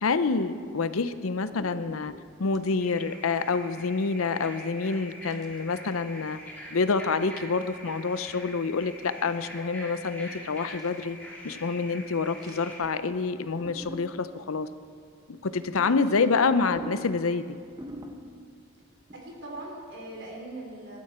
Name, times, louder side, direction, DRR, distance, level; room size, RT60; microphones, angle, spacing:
voice 1, 0.0-2.1 2.4-6.4 6.7-11.2 11.4-14.7 15.3-17.6, left 4 dB, 80° left, 12 dB, 0.6 m, -27 dB
sound 1, 1.5-2.7 3.3-3.6 3.9-4.0 5.2-6.3 6.8-7.1 7.4-7.7 8.3-8.4 8.7-8.8 9.0-9.4 9.7-9.8 10.5-11.2 12.1-13.0 13.3-14.4 15.3-18.6 19.1-19.2, equal, 20° right, 0.9 m, -47 dB
sound 2, 2.8-12.8, equal, 10° left, 3.1 m, -44 dB
voice 2, 16.1-16.5 19.1-21.0, right 1 dB, 60° right, -1 dB, 3.8 m, -40 dB
19.5 x 13.0 x 4.4 m, 2.2 s
head